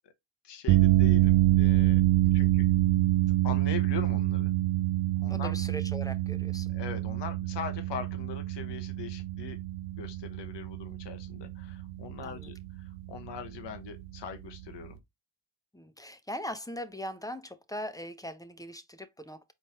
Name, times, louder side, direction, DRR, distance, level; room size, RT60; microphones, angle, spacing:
voice 1, 0.4-2.0 2.3-2.7 3.4-4.5 5.2-5.5 6.7-9.6 10.0-15.0, left 8 dB, 55° left, 1.0 m, -41 dB
sound 1, 0.7-14.9, right 16 dB, 65° right, 0.6 m, -27 dB
voice 2, 2.2-2.6 5.3-6.7 12.2-12.5 15.7-19.5, equal, 5° left, 0.7 m, -40 dB
4.3 x 3.2 x 3.0 m
supercardioid pair, 45°, 50 cm